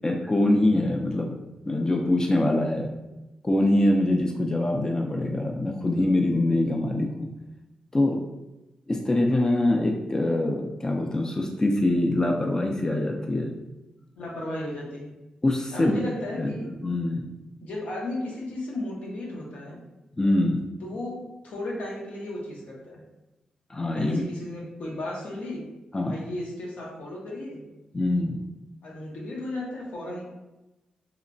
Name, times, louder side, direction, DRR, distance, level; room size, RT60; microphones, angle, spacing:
voice 1, 0.0-1.3 1.7-2.9 3.4-7.3 7.9-8.2 8.9-13.5 15.4-15.9 16.4-16.5 16.8-17.3 20.2-20.7 23.7-24.2 25.9-26.2 27.9-28.4, left 1 dB, 25° left, 1 dB, 0.4 m, -24 dB
voice 2, 14.2-15.2 15.7-16.7 17.6-19.8 20.8-23.0 23.9-25.7 26.0-27.7 28.2-28.3 28.8-30.3, left 1 dB, 75° left, -3 dB, 0.7 m, -35 dB
2.9 x 2.1 x 2.5 m, 1.0 s
cardioid pair, 55°, 2 cm